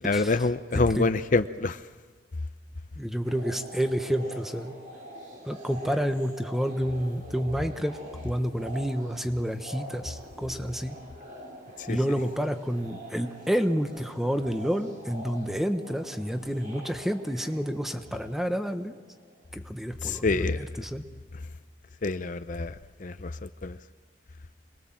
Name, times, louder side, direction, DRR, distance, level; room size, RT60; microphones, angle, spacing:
voice 1, 0.0-1.8 11.8-12.0 20.0-20.7 22.0-22.7 23.0-23.8, left 3 dB, 50° left, 11 dB, 0.7 m, -26 dB
voice 2, 0.7-1.1 3.0-4.7 5.4-8.0 8.2-11.0 11.9-18.9 19.5-21.0, equal, ahead, 8 dB, 1.2 m, -29 dB
sound 1, 3.2-19.4, equal, 45° right, 6.9 m, -45 dB
26.0 x 21.0 x 7.5 m, 1.4 s
head